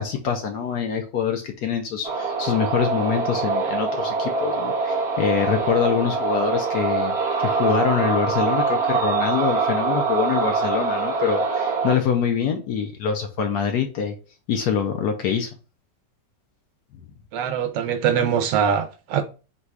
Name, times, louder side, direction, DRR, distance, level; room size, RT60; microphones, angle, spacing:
voice 1, 0.0-7.1 7.4-14.1 14.5-15.5, left 7 dB, 70° left, 1.1 m, -24 dB
sound 1, 2.0-11.9, right 4 dB, 45° right, 1.0 m, -24 dB
voice 2, 17.3-19.2, right 8 dB, 80° right, 1.2 m, -22 dB
4.0 x 2.3 x 4.5 m
omnidirectional pair, 1.9 m